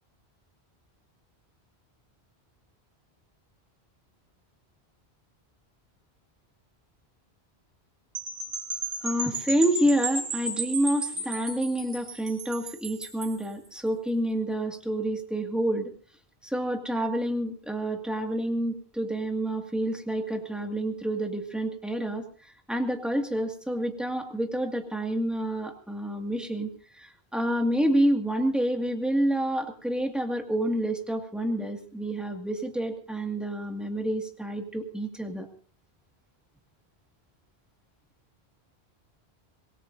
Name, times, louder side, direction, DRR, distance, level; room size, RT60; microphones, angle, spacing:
sound 1, 8.1-13.4, right 2 dB, 60° right, 2.5 m, -34 dB
voice 1, 9.0-15.9 16.4-35.5, right 1 dB, ahead, 3 dB, 2.0 m, -28 dB
25.5 x 19.0 x 2.7 m, 0.40 s
omnidirectional pair, 1.1 m